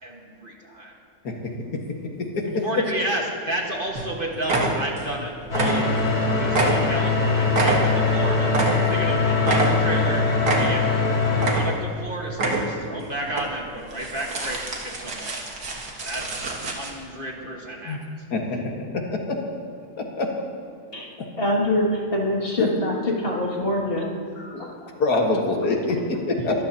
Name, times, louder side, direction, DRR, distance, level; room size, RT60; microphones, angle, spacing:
voice 1, 0.0-0.9 2.5-8.6 8.9-10.2 10.6-10.8 11.5-15.5 16.0-18.0, right 1 dB, 35° right, -1 dB, 1.8 m, -31 dB
voice 2, 1.2-1.8 2.3-2.4 17.8-18.0 18.3-18.4 18.9-19.2 20.0-20.3 22.6-22.7 24.5-24.7 25.0-26.6, left 3 dB, 90° left, 0 dB, 2.3 m, -25 dB
sound 1, 3.5-3.7 4.0-4.1 4.4-5.2 5.5-6.2 6.5-9.1 9.4-10.1 10.4-11.0 11.3-12.0 12.3-12.9 13.3-13.4 13.9-16.9, right 2 dB, 90° right, 2.3 m, -26 dB
sound 2, 5.5-11.5, left 4 dB, 70° left, 3.2 m, -22 dB
voice 3, 21.4-24.1 24.3-24.9, left 1 dB, 35° left, -3 dB, 2.6 m, -25 dB
23.5 x 14.0 x 2.9 m, 2.3 s
omnidirectional pair, 1.6 m